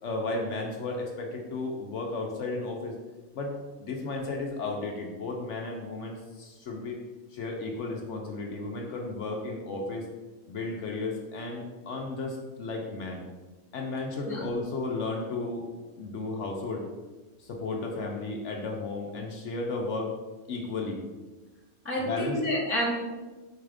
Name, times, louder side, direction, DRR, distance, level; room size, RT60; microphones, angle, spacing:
voice 1, 0.0-2.9 3.3-7.0 7.3-10.1 10.5-13.2 13.7-15.7 16.0-16.8 17.4-20.1 20.5-21.0 22.0-22.4, left 3 dB, 65° left, 1 dB, 0.8 m, -34 dB
voice 2, 21.8-22.9, equal, 15° right, -5 dB, 0.5 m, -29 dB
4.7 x 2.3 x 4.8 m, 1.2 s
omnidirectional pair, 1.5 m